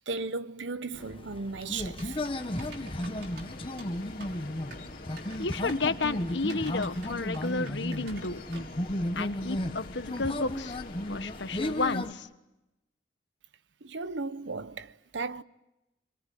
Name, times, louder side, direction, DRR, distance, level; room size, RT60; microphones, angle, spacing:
voice 1, 0.1-2.2 13.8-15.4, right 3 dB, 85° right, 0.9 m, -36 dB
sound 1, 0.9-12.1, left 1 dB, 30° left, 1.0 m, -34 dB
Typing, 1.8-8.8, right 2 dB, 65° right, 5.5 m, -48 dB
sound 2, 2.3-12.0, left 2 dB, 50° left, 3.0 m, -47 dB
voice 2, 5.4-8.4 9.1-10.8 11.1-12.3, left 3 dB, 80° left, 1.4 m, -32 dB
28.0 x 22.5 x 9.3 m
head